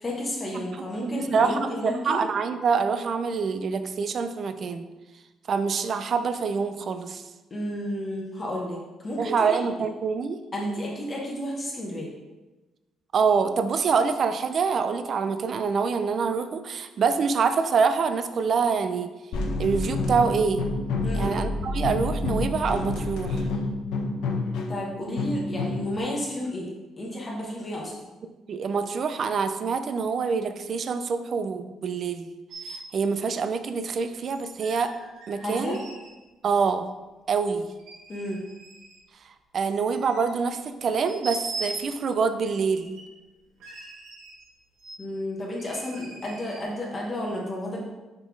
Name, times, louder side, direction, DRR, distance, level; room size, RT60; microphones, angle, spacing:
voice 1, 0.0-2.2 7.5-9.6 10.5-12.1 21.0-21.3 24.7-26.7 27.0-27.9 35.4-35.8 38.1-38.4 45.0-47.8, left 1 dB, 25° left, -2 dB, 1.0 m, -32 dB
voice 2, 0.5-4.9 5.5-7.2 9.2-10.4 13.1-19.1 19.6-20.6 21.1-23.4 28.5-32.3 32.7-34.9 35.3-35.8 36.4-36.9 37.3-37.7 39.5-42.9, right 5 dB, 40° right, 9 dB, 0.4 m, -26 dB
sound 1, 19.3-26.0, left 2 dB, 85° left, 0.7 m, -28 dB
sound 2, 32.5-32.9 34.3-36.1 36.6-36.7 37.7-39.0 39.6-40.5 41.0-41.9 42.7-43.2 43.6-44.5 44.8-45.0 45.6-46.6, right 3 dB, 75° right, 1.3 m, -41 dB
5.4 x 4.1 x 4.5 m, 1.1 s
cardioid pair, 160°, 0 cm